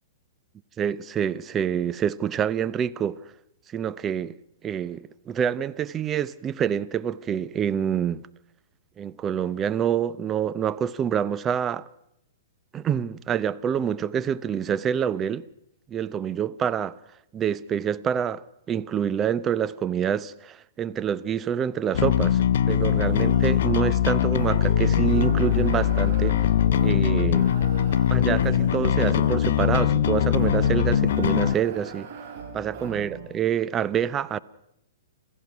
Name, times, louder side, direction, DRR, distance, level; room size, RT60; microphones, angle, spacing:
voice 1, 0.8-3.2 3.7-4.4 4.6-8.2 9.0-11.8 12.7-15.4 15.9-17.0 17.3-26.4 26.8-27.5 28.1-32.1 32.5-34.4, right 8 dB, 20° right, 0.7 m, -27 dB
Bass guitar, 21.9-31.5, left 10 dB, 65° left, 0.7 m, -22 dB
cyber kanye not kanye, 22.7-33.3, right 6 dB, 50° right, 6.4 m, -38 dB
28.0 x 15.5 x 6.0 m
hypercardioid pair, 125°, 0 cm